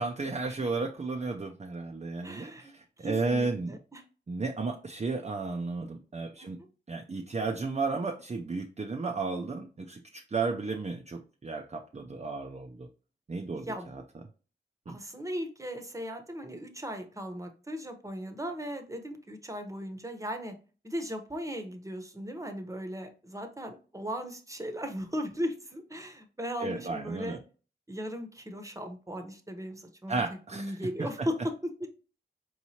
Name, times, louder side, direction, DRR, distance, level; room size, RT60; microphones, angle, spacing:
voice 1, 0.0-3.8 4.3-6.6 6.9-12.9 13.3-14.0 14.9-15.0 26.6-27.4 30.1-31.3, right 3 dB, 30° right, 3 dB, 0.5 m, -33 dB
voice 2, 2.2-2.7 3.0-4.0 6.4-6.7 13.7-13.9 14.9-20.5 20.8-27.4 27.9-30.2 30.5-31.9, equal, 15° right, 7 dB, 0.8 m, -37 dB
4.6 x 3.1 x 2.8 m, 0.37 s
cardioid pair, 45°, 21 cm